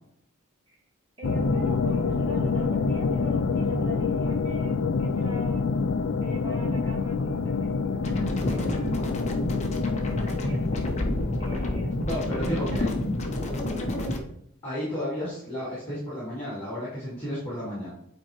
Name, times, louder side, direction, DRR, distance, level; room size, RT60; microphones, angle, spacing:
sound 1, 1.2-14.1, left 4 dB, 60° left, 0.4 m, -28 dB
voice 1, 1.2-5.7 6.2-9.0 9.9-13.2 13.7-13.9, right 1 dB, 25° right, -2 dB, 1.6 m, -43 dB
sound 2, 8.0-14.2, left 1 dB, 30° left, 0.8 m, -29 dB
voice 2, 12.0-13.0 14.6-17.9, left 1 dB, 10° left, -9 dB, 2.7 m, -32 dB
8.9 x 4.4 x 3.1 m, 0.75 s
head